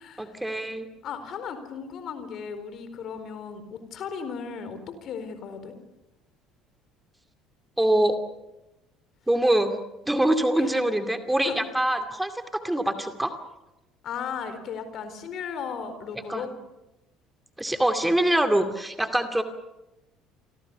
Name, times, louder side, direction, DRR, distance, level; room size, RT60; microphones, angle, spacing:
voice 1, 0.2-0.9 7.8-8.2 9.3-9.7 10.1-13.3 16.3-16.4 17.6-19.4, right 1 dB, 5° right, 8 dB, 2.4 m, -24 dB
voice 2, 1.0-5.7 10.6-10.7 11.4-11.7 14.0-16.5, left 6 dB, 50° left, 10 dB, 4.3 m, -36 dB
30.0 x 24.5 x 7.1 m, 0.99 s
figure-of-eight pair, 55°, 0 cm